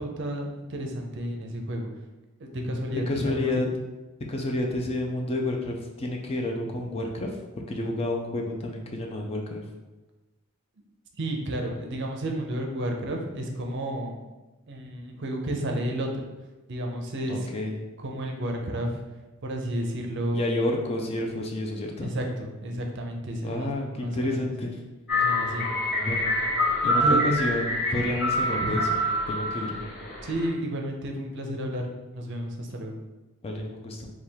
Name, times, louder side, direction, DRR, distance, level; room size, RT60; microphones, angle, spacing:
voice 1, 0.0-1.9 2.4-3.6 11.2-14.2 14.7-16.2 16.7-17.5 18.0-18.9 19.4-20.5 22.0-24.5 25.1-25.7 27.0-27.2 28.6-28.8 30.2-31.8 32.1-32.9, right 1 dB, 55° right, 2 dB, 0.5 m, -31 dB
voice 2, 3.1-3.7 4.3-7.3 7.7-9.6 17.3-17.8 20.3-22.1 23.4-24.8 26.0-26.3 26.8-29.0 29.3-29.9 33.4-34.1, left 1 dB, 25° left, 1 dB, 0.4 m, -30 dB
sound 1, 25.1-30.5, left 1 dB, ahead, 1.1 m, -26 dB
3.4 x 2.3 x 4.4 m, 1.1 s
head